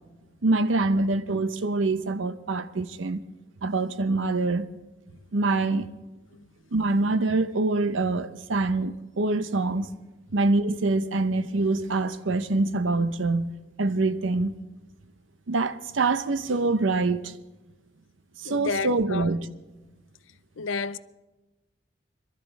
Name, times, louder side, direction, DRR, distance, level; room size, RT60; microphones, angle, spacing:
voice 1, 0.4-3.2 3.6-4.7 5.3-5.9 6.7-9.9 10.3-14.5 15.5-17.3 18.4-19.5, right 3 dB, 85° right, 0.7 m, -25 dB
voice 2, 18.4-19.3 20.6-21.0, left 4 dB, 90° left, 0.5 m, -30 dB
22.5 x 13.0 x 4.1 m
head